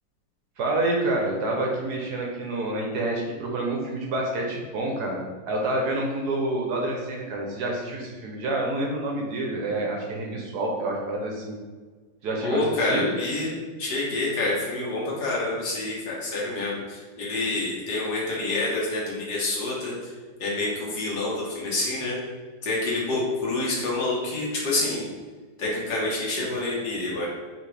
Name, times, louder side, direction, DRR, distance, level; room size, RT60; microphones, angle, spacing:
voice 1, 0.6-11.6 12.2-13.1, right 2 dB, 65° right, 0 dB, 1.1 m, -28 dB
voice 2, 12.4-19.9 20.4-22.1 22.6-25.0 25.6-27.3, left 2 dB, 60° left, -5 dB, 1.7 m, -27 dB
5.0 x 3.1 x 3.3 m, 1.5 s
omnidirectional pair, 2.0 m